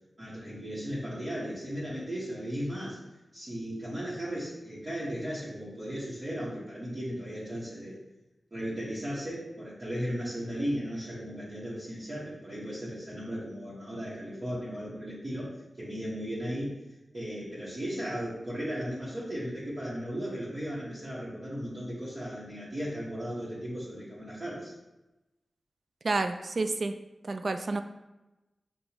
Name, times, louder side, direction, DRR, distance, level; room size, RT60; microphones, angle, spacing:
voice 1, 0.2-3.0 3.3-8.0 8.5-16.7 17.1-24.7, equal, 40° right, -10 dB, 1.3 m, -36 dB
voice 2, 26.0-27.0 27.2-27.8, right 3 dB, 60° right, 8 dB, 0.3 m, -29 dB
5.6 x 2.5 x 2.9 m, 1.0 s
cardioid pair, 50°, 0 cm